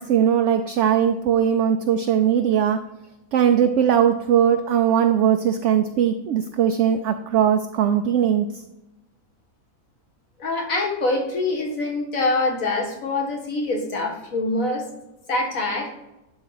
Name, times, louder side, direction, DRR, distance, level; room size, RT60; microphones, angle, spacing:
voice 1, 0.0-2.8 3.3-8.5, right 9 dB, 65° right, 7 dB, 0.8 m, -20 dB
voice 2, 10.4-14.9 15.3-15.9, left 2 dB, 65° left, 1 dB, 1.9 m, -24 dB
11.0 x 4.4 x 4.0 m, 0.96 s
omnidirectional pair, 1.5 m